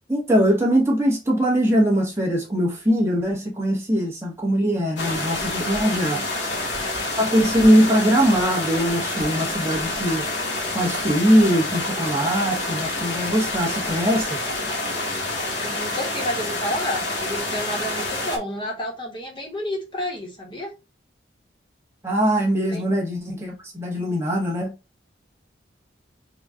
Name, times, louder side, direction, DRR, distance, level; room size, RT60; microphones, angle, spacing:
voice 1, 0.1-6.2 7.2-10.2 10.7-14.4 22.0-24.7, equal, 15° right, 1.0 m, -21 dB
sound 1, 5.0-18.4, left 2 dB, 70° left, 1.2 m, -27 dB
voice 2, 15.6-20.7 22.7-22.8, left 1 dB, 25° left, 1.0 m, -30 dB
3.9 x 2.3 x 3.6 m
head